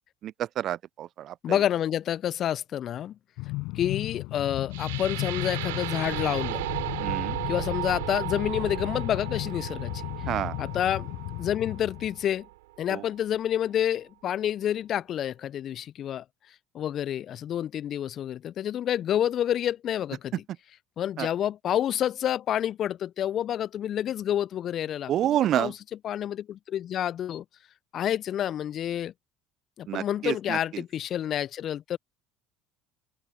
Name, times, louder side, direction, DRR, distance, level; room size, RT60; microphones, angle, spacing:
voice 1, 0.2-1.6 7.0-7.4 10.3-10.6 12.9-13.0 21.2-21.3 25.1-25.7 29.9-30.6, right 12 dB, 50° right, 0.8 m, -28 dB
voice 2, 1.4-3.2 3.7-6.6 7.5-10.0 10.6-11.1 11.4-12.5 12.8-16.2 16.7-20.4 21.0-25.8 26.0-27.4 27.9-29.1 29.8-32.0, left 10 dB, 45° left, 1.0 m, -29 dB
Train, 3.4-12.2, left 24 dB, 60° left, 5.8 m, -35 dB
sound 1, 4.7-12.7, right 20 dB, 70° right, 5.2 m, -35 dB
open air
figure-of-eight pair, 65°, 0 cm